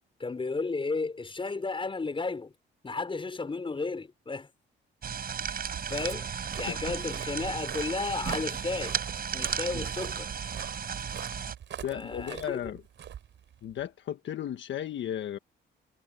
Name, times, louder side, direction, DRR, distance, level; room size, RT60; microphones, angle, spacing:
voice 1, 0.2-2.5 2.8-4.5 5.5-5.6 5.9-6.3 6.6-9.0 9.3-10.3 11.9-12.7, left 3 dB, 25° left, 5.4 m, -33 dB
sound 1, 5.0-11.5, right 7 dB, 50° right, 6.3 m, -34 dB
Walk footsteps, 5.6-13.8, right 9 dB, 65° right, 5.6 m, -44 dB
voice 2, 11.8-12.8 13.6-15.4, left 10 dB, 70° left, 1.4 m, -35 dB
cardioid pair, 90°, 20 cm